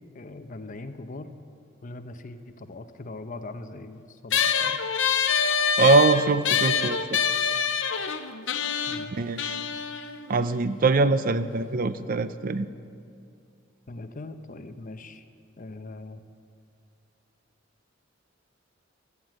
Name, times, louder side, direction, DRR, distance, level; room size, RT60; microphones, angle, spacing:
voice 1, 0.1-1.3 1.8-4.8 8.9-9.1 13.9-15.2 15.6-16.2, left 2 dB, 45° left, 9 dB, 0.8 m, -40 dB
sound 1, 4.3-11.1, left 7 dB, 70° left, 0.8 m, -26 dB
voice 2, 5.8-7.2 9.1-9.6 10.3-12.7, right 3 dB, 45° right, 13 dB, 0.5 m, -22 dB
17.0 x 11.0 x 7.6 m, 2.4 s
head